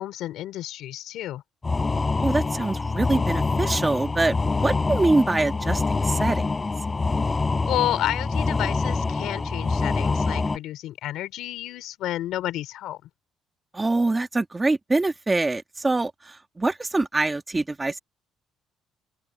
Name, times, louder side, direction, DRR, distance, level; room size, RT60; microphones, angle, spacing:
voice 1, 0.0-1.4 7.7-13.1, left 13 dB, 70° left, 3.7 m, -30 dB
sound 1, 1.6-10.6, left 3 dB, 15° left, 5.5 m, -25 dB
voice 2, 2.2-6.4 13.7-18.0, right 2 dB, 15° right, 1.4 m, -24 dB
open air
cardioid pair, 150°, 0 cm